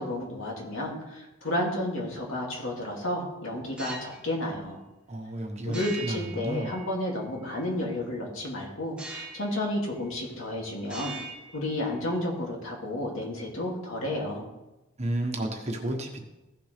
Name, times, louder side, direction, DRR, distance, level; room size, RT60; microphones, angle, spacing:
voice 1, 0.0-4.8 5.6-11.1 11.5-14.5, left 1 dB, 70° left, -1 dB, 2.5 m, -31 dB
sound 1, 3.6-4.2 5.7-7.2 9.0-9.7 10.0-10.5 10.8-12.2, right 3 dB, 5° right, 1.1 m, -42 dB
voice 2, 5.1-6.7 15.0-16.2, right 1 dB, 30° right, 2 dB, 1.2 m, -32 dB
15.5 x 6.9 x 3.4 m, 1.0 s
head